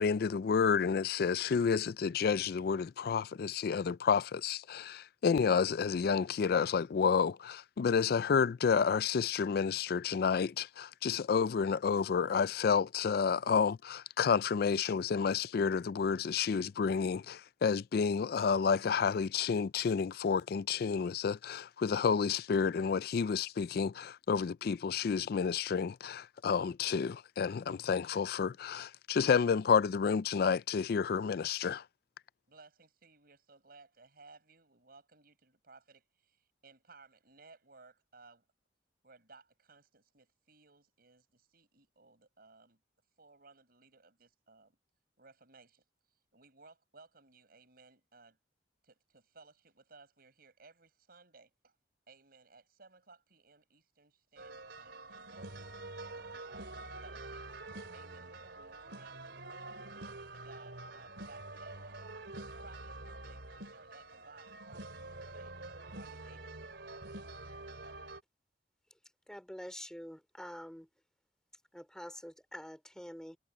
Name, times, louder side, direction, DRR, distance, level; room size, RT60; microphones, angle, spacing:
voice 1, 0.0-31.8, left 6 dB, 60° left, 0.4 m, -30 dB
voice 2, 32.5-36.4 36.6-38.5 39.0-42.8 43.2-44.8 45.2-45.8 46.3-48.4 48.8-51.7 52.1-55.7 56.3-57.4 57.9-62.2 62.6-65.5 65.9-67.0, right 3 dB, 60° right, 7.0 m, -60 dB
sound 1, 54.4-68.2, right 2 dB, 75° right, 3.3 m, -47 dB
voice 3, 69.3-70.9 71.7-73.4, equal, 5° left, 3.2 m, -46 dB
head